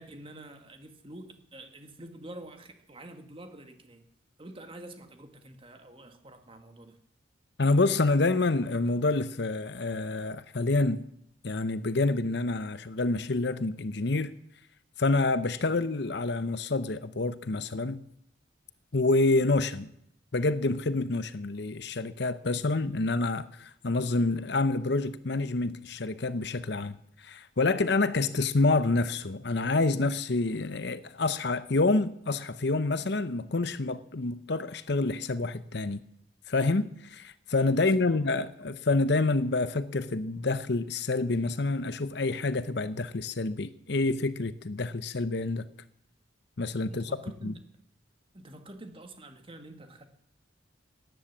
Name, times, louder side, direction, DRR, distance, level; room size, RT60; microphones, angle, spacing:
voice 1, 0.0-4.0 4.4-7.0 37.8-38.2 46.9-47.5 48.3-50.0, right 1 dB, 30° right, 1.8 m, -47 dB
voice 2, 7.6-11.1 11.4-14.3 15.0-18.0 18.9-19.9 20.3-36.0 36.5-45.7 46.6-47.1 47.4-47.6, left 3 dB, 60° left, 0.8 m, -27 dB
18.0 x 10.5 x 7.3 m
head